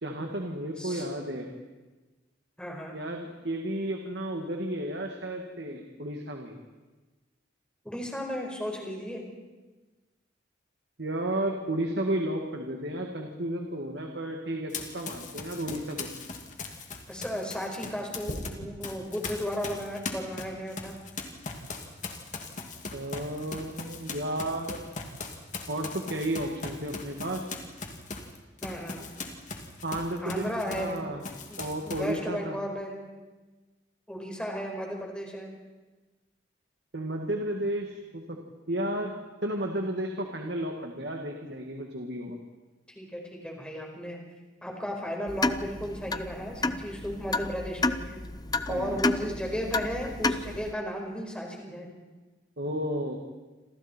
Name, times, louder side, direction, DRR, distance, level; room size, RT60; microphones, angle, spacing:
voice 1, 0.0-1.5 2.9-6.6 11.0-16.1 22.9-24.8 25.7-27.5 29.8-30.4 30.8-31.2 31.6-32.6 36.9-38.4 38.7-39.1 39.4-42.4 48.7-49.4 52.6-53.2, right 1 dB, 60° right, 2 dB, 2.2 m, -33 dB
voice 2, 2.6-2.9 7.8-9.2 17.1-20.9 28.6-29.0 30.2-31.0 31.5-33.0 34.1-35.5 42.9-44.2 44.6-48.2 48.7-51.9, equal, 5° left, 0 dB, 5.0 m, -34 dB
Run, 14.7-18.5 18.8-31.0 31.2-32.2, left 3 dB, 40° left, 2.6 m, -39 dB
sound 1, 18.2-18.8 20.8-21.0, equal, 85° left, 5.9 m, -40 dB
sound 2, 45.3-50.7, left 3 dB, 20° left, 0.7 m, -31 dB
28.5 x 27.5 x 4.6 m, 1.2 s
head